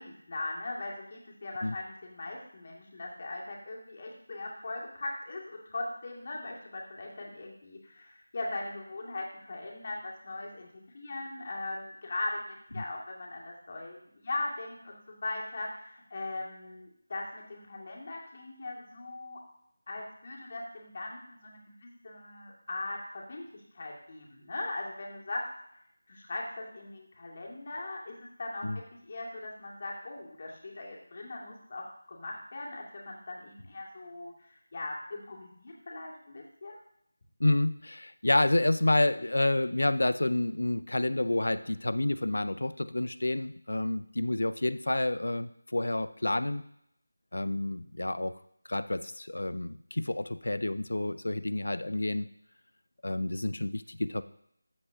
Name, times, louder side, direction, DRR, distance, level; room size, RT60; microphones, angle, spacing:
voice 1, 0.0-10.7 10.9-14.0 14.2-19.4 19.9-25.5 26.1-28.7 29.0-36.8, left 2 dB, 40° left, -2 dB, 2.1 m, -39 dB
voice 2, 37.4-46.6 47.3-48.3 48.7-52.3 53.0-54.2, left 1 dB, 70° left, 14 dB, 0.5 m, -29 dB
13.5 x 7.6 x 2.8 m, 0.73 s
figure-of-eight pair, 165°, 0 cm